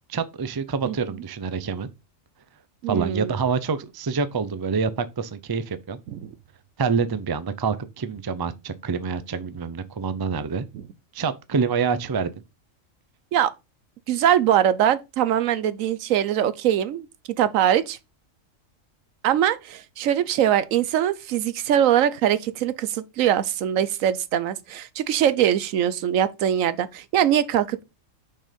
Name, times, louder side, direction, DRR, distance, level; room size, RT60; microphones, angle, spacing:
voice 1, 0.1-1.9 2.9-6.0 6.8-10.7 11.1-12.3, right 5 dB, 35° right, 0.3 m, -26 dB
voice 2, 2.8-3.3 6.1-6.3 13.3-13.5 14.1-17.1 17.4-18.0 19.2-27.8, right 10 dB, 85° right, 1.1 m, -22 dB
6.2 x 4.5 x 5.1 m
omnidirectional pair, 1.4 m